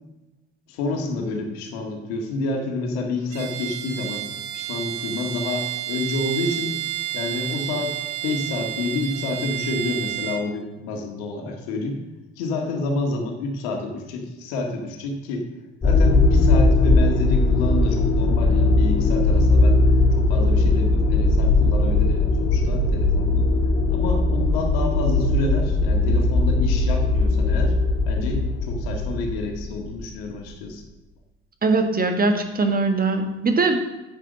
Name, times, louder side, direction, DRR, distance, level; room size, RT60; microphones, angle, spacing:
voice 1, 0.7-6.8 7.1-8.0 8.2-12.0 12.4-15.5 15.8-19.8 20.2-23.5 23.9-27.7 28.0-30.8, left 3 dB, 65° left, 2 dB, 1.9 m, -29 dB
Bowed string instrument, 3.3-10.5, right 13 dB, 50° right, 1.1 m, -30 dB
sound 1, 15.8-30.1, left 2 dB, 25° left, 2.6 m, -19 dB
voice 2, 31.6-33.8, right 3 dB, 25° right, 6 dB, 1.6 m, -21 dB
10.0 x 8.7 x 5.3 m, 1.0 s
figure-of-eight pair, 50°, 33 cm